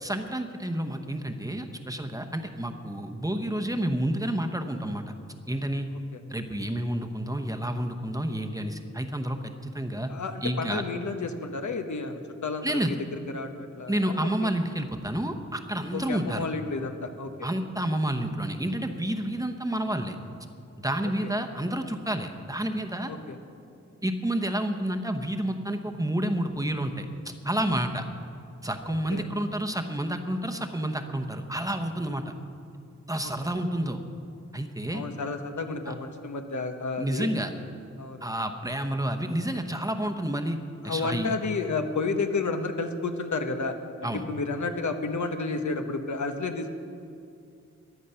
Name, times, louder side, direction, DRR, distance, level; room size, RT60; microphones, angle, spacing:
voice 1, 0.0-5.1 5.5-5.9 6.3-10.1 10.4-10.8 12.6-12.9 13.9-16.5 17.4-20.2 20.8-23.1 24.0-27.1 27.4-28.0 28.6-32.2 33.1-34.0 34.5-35.0 35.9-36.0 37.0-37.5 38.2-40.6 40.8-41.4 44.0-44.2, right 1 dB, 10° right, 5 dB, 0.9 m, -29 dB
voice 2, 10.1-14.5 15.9-17.3 21.2-21.3 23.1-23.4 28.8-29.2 33.2-33.6 34.9-37.3 38.0-38.3 40.8-43.7 44.0-46.8, left 3 dB, 85° left, 6 dB, 1.0 m, -31 dB
15.0 x 11.0 x 5.6 m, 2.5 s
wide cardioid pair, 95°, 29 cm